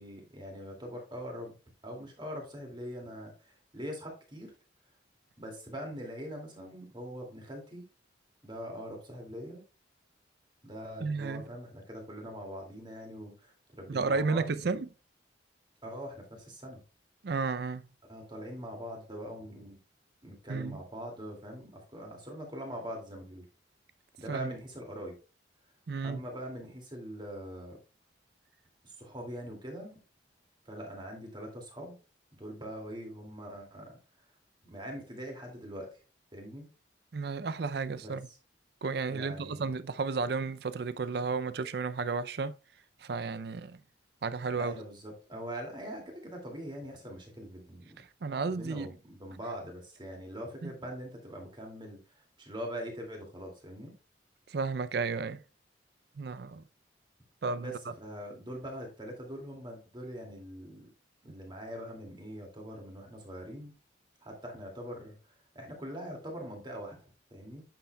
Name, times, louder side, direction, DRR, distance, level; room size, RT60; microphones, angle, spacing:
voice 1, 0.0-1.5 1.8-4.5 5.4-7.9 8.4-9.6 10.6-14.7 15.8-16.8 18.1-19.8 20.2-23.4 24.2-25.1 26.0-27.8 28.8-30.0 30.7-32.0 32.3-33.9 34.6-36.0 36.3-36.7 37.9-38.2 39.1-39.7 44.5-48.0 48.5-53.9 57.6-60.8 61.2-63.7 64.2-67.6, equal, 25° right, 2.3 m, -43 dB
voice 2, 11.0-11.4 13.9-14.9 17.2-17.9 20.5-20.8 24.3-24.5 25.9-26.2 37.1-38.3 38.8-42.5 43.0-43.8 44.2-44.8 48.0-49.0 50.6-50.7 54.5-55.4 56.2-56.6 57.4-57.7, right 4 dB, 60° right, 0.5 m, -33 dB
9.4 x 6.8 x 2.3 m
head